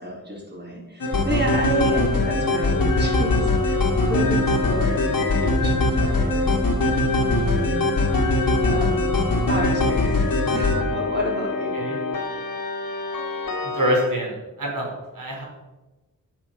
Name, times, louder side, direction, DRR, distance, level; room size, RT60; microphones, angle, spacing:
voice 1, 0.0-6.6 7.2-7.8 8.6-10.1 10.5-11.8 12.3-12.4, right 1 dB, 30° right, -1 dB, 4.4 m, -30 dB
sound 1, 1.0-14.1, left 2 dB, 90° left, 2.6 m, -22 dB
voice 2, 13.6-15.4, equal, 80° right, -2 dB, 5.0 m, -26 dB
12.0 x 7.8 x 7.7 m, 1.1 s
wide cardioid pair, 115°, 33 cm